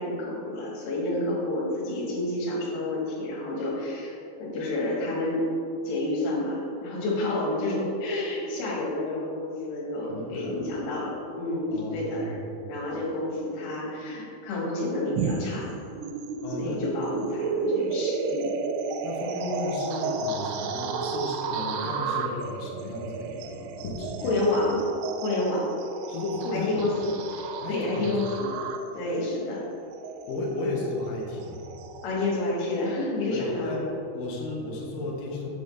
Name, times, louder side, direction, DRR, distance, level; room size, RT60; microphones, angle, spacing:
voice 1, 0.0-5.5 5.8-12.4 12.7-15.7 16.5-18.6 24.2-24.8 25.1-25.7 26.5-28.5 28.9-29.6 32.0-33.9, left 2 dB, 65° left, -5 dB, 3.5 m, -29 dB
voice 2, 10.1-10.7 11.7-12.5 16.4-17.0 19.0-24.4 26.1-26.8 27.6-28.1 30.2-31.7 33.3-33.8 34.1-35.5, left 2 dB, 90° left, -2 dB, 1.9 m, -34 dB
sound 1, 15.2-32.1, right 4 dB, 85° right, 3.1 m, -32 dB
8.0 x 7.0 x 3.3 m, 2.6 s
omnidirectional pair, 5.7 m